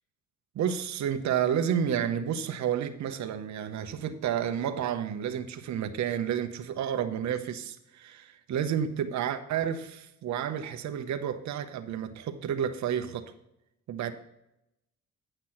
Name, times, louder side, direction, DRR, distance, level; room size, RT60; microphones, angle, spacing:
voice 1, 0.5-13.3 13.9-14.1, right 9 dB, 65° right, 0.9 m, -30 dB
9.0 x 6.0 x 5.8 m
cardioid pair, 90°, 30 cm